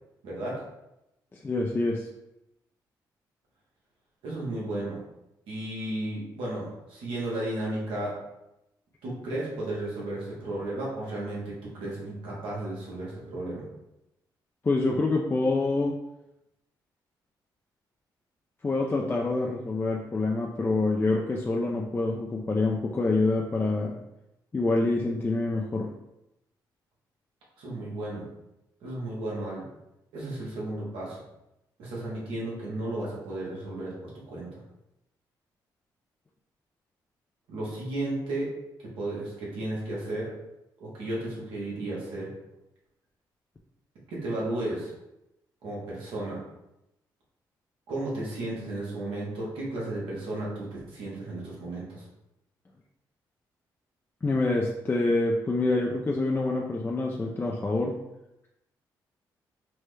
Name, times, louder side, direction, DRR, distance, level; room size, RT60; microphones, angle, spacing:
voice 1, 0.2-0.6 4.2-5.0 5.5-8.2 9.0-13.6 27.6-28.2 28.8-29.6 30.1-31.2 31.8-34.6 37.5-38.5 38.8-40.3 40.8-42.3 44.1-44.9 45.6-46.4 47.9-52.0, right 1 dB, 85° right, -5 dB, 1.1 m, -34 dB
voice 2, 1.3-2.1 14.6-16.0 18.6-24.0 24.5-25.9 54.2-58.0, left 2 dB, 25° left, -1 dB, 0.4 m, -26 dB
3.2 x 2.1 x 3.2 m, 0.89 s
supercardioid pair, 60°, 9 cm